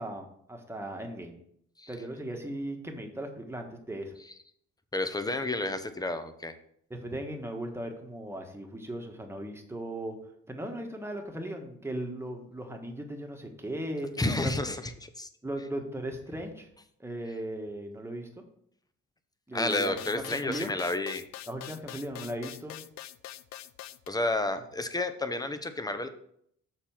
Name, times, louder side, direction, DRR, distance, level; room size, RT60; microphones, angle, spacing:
voice 1, 0.0-1.3 1.9-4.1 6.9-10.2 10.5-14.1 14.4-14.5 15.4-16.7 17.0-18.4 19.5-20.7 21.5-22.8, right 1 dB, 10° right, 3 dB, 1.4 m, -37 dB
voice 2, 4.9-6.5 14.2-15.3 19.5-21.2 24.1-26.1, left 2 dB, 15° left, 9 dB, 0.8 m, -31 dB
sound 1, 19.7-24.1, left 13 dB, 65° left, 0.5 m, -44 dB
6.8 x 4.3 x 5.9 m, 0.69 s
cardioid pair, 90°, 30 cm